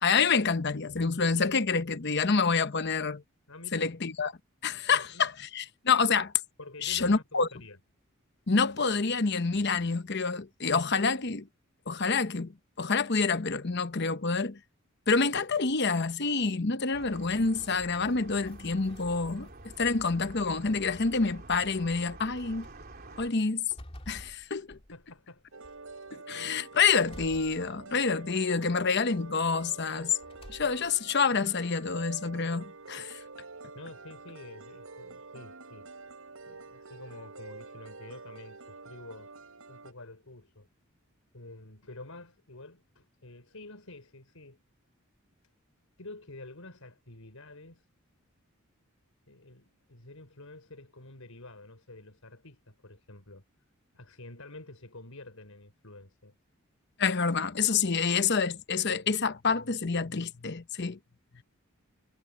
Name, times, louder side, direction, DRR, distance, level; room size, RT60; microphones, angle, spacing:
voice 1, 0.0-3.2 3.7-4.3 4.6-6.3 6.8-7.5 8.5-11.5 11.9-12.5 12.8-14.6 15.1-19.5 19.8-22.7 23.2-23.6 24.1-24.8 26.1-30.1 30.5-33.2 57.0-61.0, left 4 dB, 55° left, 1.0 m, -27 dB
voice 2, 3.5-3.9 4.9-5.3 6.6-7.8 24.9-25.4 33.7-35.9 36.4-39.3 39.7-40.7 41.3-44.6 46.0-47.9 49.3-53.4 53.9-56.3, left 2 dB, 90° left, 4.8 m, -48 dB
sound 1, 16.9-23.3, right 2 dB, 45° right, 3.4 m, -48 dB
sound 2, 17.9-19.8 20.3-21.1 21.8-21.9 22.4-22.7 23.2-25.2 25.6-26.2 27.0-28.2 28.6-29.2 30.2-31.0, left 1 dB, 30° left, 2.6 m, -51 dB
sound 3, 25.5-39.9, right 3 dB, 80° right, 4.8 m, -47 dB
head